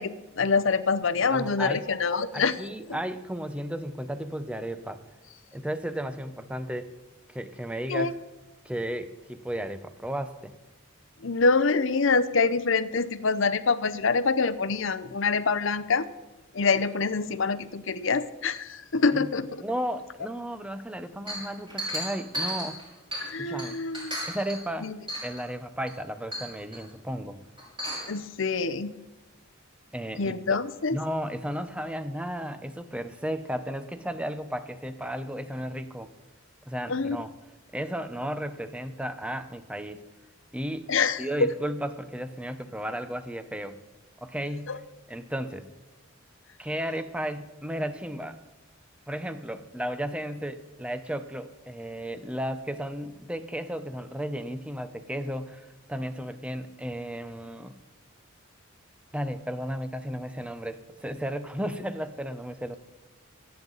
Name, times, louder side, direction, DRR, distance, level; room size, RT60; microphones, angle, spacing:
voice 1, 0.0-2.6 7.9-8.1 11.2-16.1 16.5-19.5 23.2-24.2 24.8-25.0 28.1-29.0 30.2-31.0 36.9-37.2 40.9-41.5 44.7-44.8, left 4 dB, 65° left, 14 dB, 0.7 m, -25 dB
voice 2, 1.3-1.9 2.3-5.0 5.5-6.9 7.3-8.1 8.6-10.5 19.1-19.3 19.6-22.8 23.4-23.8 24.3-24.9 25.2-27.4 29.9-30.6 30.9-36.1 36.7-37.3 37.7-40.0 40.5-40.8 41.2-43.8 44.2-44.7 45.1-45.6 46.6-48.4 49.1-57.7 59.1-62.7, equal, 5° right, 10 dB, 0.7 m, -34 dB
Chink clink, 21.3-23.3 23.6-24.6 25.1-25.4 25.9-26.0 26.3-26.8 27.6-28.1, equal, 25° right, 5.5 m, -34 dB
25.0 x 9.1 x 4.0 m, 1.1 s
head